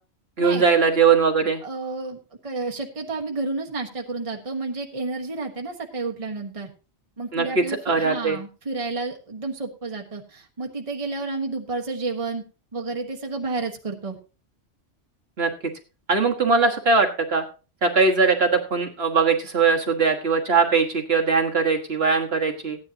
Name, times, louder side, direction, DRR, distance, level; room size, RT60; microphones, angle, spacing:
voice 1, 0.4-1.6 7.3-8.4 15.4-15.5 16.1-17.4 17.8-22.8, right 5 dB, 55° right, 2 dB, 1.7 m, -20 dB
voice 2, 1.6-6.7 7.2-12.4 12.7-14.2, right 3 dB, 30° right, 2 dB, 1.3 m, -31 dB
15.0 x 9.9 x 2.8 m, 0.33 s
omnidirectional pair, 1.2 m